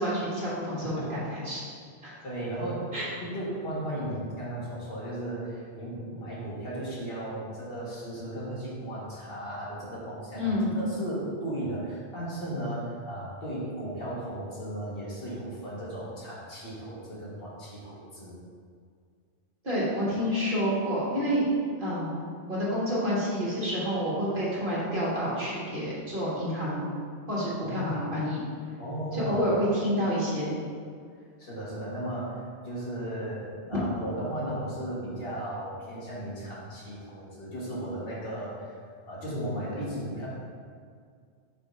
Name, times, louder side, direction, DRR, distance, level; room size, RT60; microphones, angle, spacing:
voice 1, 0.0-1.6 2.0-2.1 2.9-3.0 10.3-10.8 19.6-21.5 21.8-22.2 22.5-26.9 27.3-28.4 29.1-30.5, equal, 50° right, -9 dB, 1.9 m, -28 dB
voice 2, 2.2-2.9 3.2-18.3 27.6-28.0 28.8-29.4 31.4-38.7 39.1-40.3, right 1 dB, 55° left, -7 dB, 1.6 m, -35 dB
5.1 x 4.4 x 4.5 m, 2.1 s
omnidirectional pair, 1.1 m